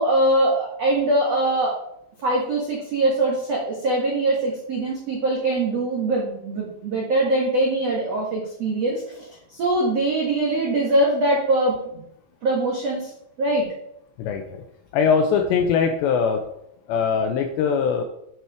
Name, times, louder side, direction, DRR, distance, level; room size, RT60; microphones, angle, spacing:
voice 1, 0.0-1.8 2.2-12.0 12.4-13.1 13.4-13.7, right 2 dB, 85° right, -3 dB, 1.4 m, -22 dB
voice 2, 14.2-14.6 14.9-16.4 16.9-18.0, left 6 dB, 85° left, 4 dB, 2.5 m, -21 dB
9.5 x 5.8 x 4.8 m, 0.76 s
omnidirectional pair, 5.7 m